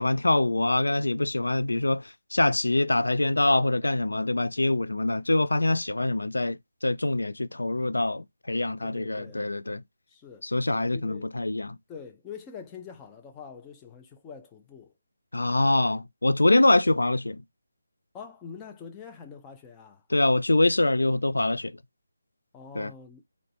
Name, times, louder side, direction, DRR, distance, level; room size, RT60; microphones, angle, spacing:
voice 1, 0.0-9.8 10.4-11.8 15.3-17.4 20.1-21.7 22.8-22.9, left 2 dB, 90° left, 0.3 m, -24 dB
voice 2, 8.8-9.4 10.1-10.5 10.9-11.3 11.9-14.9 18.1-20.1 22.5-23.2, left 6 dB, 10° left, 0.5 m, -44 dB
3.8 x 2.2 x 2.9 m
figure-of-eight pair, 160°, 0 cm